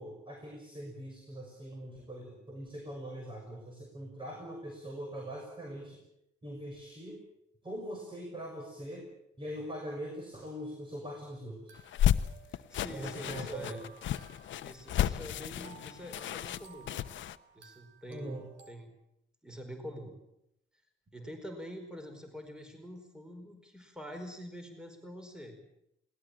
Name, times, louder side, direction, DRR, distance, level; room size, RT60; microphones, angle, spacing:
voice 1, 0.0-6.0 6.4-7.2 7.6-9.1 9.4-11.8 12.9-13.8 18.1-18.5, equal, 25° right, 1 dB, 6.1 m, -42 dB
sound 1, 10.7-10.8 11.7-18.7, right 7 dB, 75° right, 3.9 m, -57 dB
sound 2, 11.8-17.4, left 11 dB, 75° left, 1.0 m, -32 dB
voice 2, 12.5-13.8 14.6-16.9 17.5-18.9 19.4-20.1 21.1-25.6, equal, 5° right, 5 dB, 4.8 m, -46 dB
21.0 x 19.0 x 8.9 m, 0.80 s
cardioid pair, 90°, 20 cm